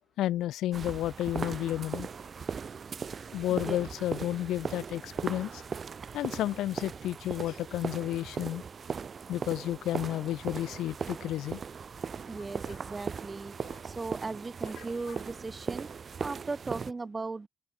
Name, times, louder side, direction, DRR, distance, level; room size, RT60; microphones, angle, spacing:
voice 1, 0.2-2.1 3.3-5.6 6.1-8.6 9.3-11.6 12.6-12.8 13.6-13.8 14.8-15.2, left 13 dB, 85° left, 0.6 m, -32 dB
sound 1, 0.7-16.9, right 6 dB, 45° right, 0.4 m, -38 dB
voice 2, 12.3-13.5 13.8-15.9 16.2-17.5, right 3 dB, 25° right, 0.9 m, -37 dB
cardioid pair, 90°, 0 cm